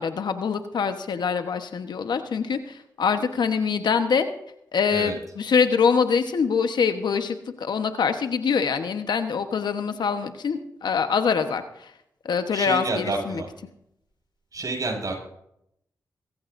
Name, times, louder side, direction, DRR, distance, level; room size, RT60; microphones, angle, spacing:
voice 1, 0.0-4.3 4.7-11.9 12.2-13.4, left 6 dB, 80° left, 8 dB, 1.2 m, -24 dB
voice 2, 12.5-13.5 14.5-15.2, right 3 dB, 55° right, 1 dB, 6.7 m, -29 dB
23.0 x 15.0 x 2.7 m, 0.77 s
cardioid pair, 45°, 7 cm